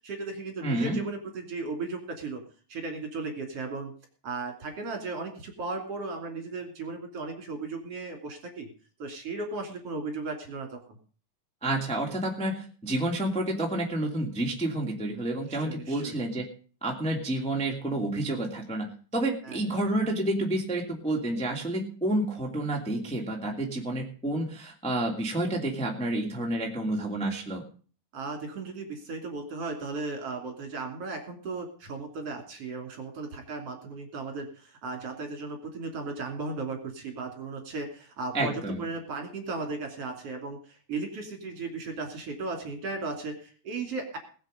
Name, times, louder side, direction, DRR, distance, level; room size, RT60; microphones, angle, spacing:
voice 1, 0.0-2.4 2.7-3.9 4.2-8.7 9.0-11.0 15.6-16.2 19.4-19.6 28.1-44.2, right 3 dB, 45° right, 3 dB, 3.6 m, -36 dB
voice 2, 0.6-1.0 11.6-16.4 16.8-27.6 38.3-38.8, right 1 dB, ahead, -1 dB, 1.9 m, -29 dB
20.5 x 7.5 x 5.2 m, 0.41 s
omnidirectional pair, 4.3 m